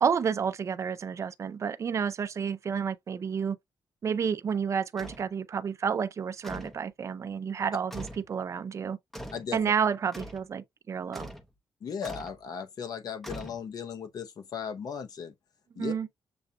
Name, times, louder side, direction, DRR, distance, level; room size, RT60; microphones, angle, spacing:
voice 1, 0.0-3.6 4.0-9.0 9.5-11.3 15.8-16.1, right 6 dB, 40° right, 0.4 m, -30 dB
sound 1, 5.0-5.3 6.4-6.8 7.9-8.3 9.1-9.5 10.1-10.5 11.1-11.5 12.0-12.4 13.2-13.9, equal, 5° left, 0.7 m, -42 dB
voice 2, 11.8-15.3 15.8-15.9, left 7 dB, 55° left, 0.7 m, -37 dB
6.8 x 2.8 x 2.2 m
wide cardioid pair, 140°, 8 cm